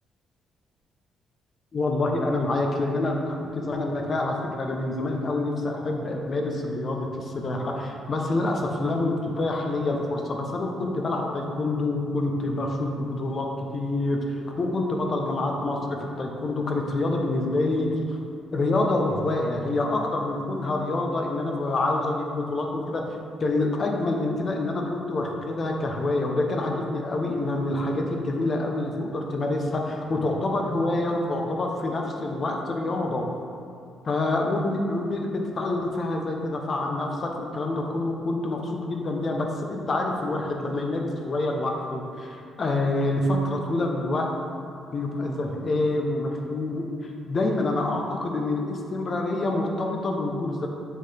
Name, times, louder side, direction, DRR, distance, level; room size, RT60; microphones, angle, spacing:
voice 1, 1.7-18.2 18.5-23.0 23.4-33.3 34.0-44.3 44.9-50.7, left 2 dB, 45° left, 1 dB, 0.8 m, -27 dB
7.9 x 3.9 x 3.4 m, 2.5 s
cardioid pair, 90°, 0 cm